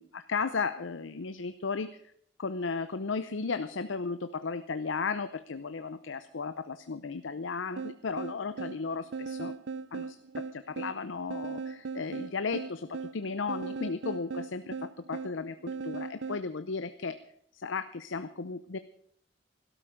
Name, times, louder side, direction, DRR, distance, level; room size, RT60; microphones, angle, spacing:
voice 1, 0.0-1.9 2.4-9.5 9.9-17.2 17.5-18.8, left 4 dB, 85° left, 11 dB, 0.7 m, -35 dB
sound 1, 7.8-16.5, right 5 dB, 80° right, 0.5 m, -38 dB
17.0 x 13.0 x 5.1 m, 0.66 s
head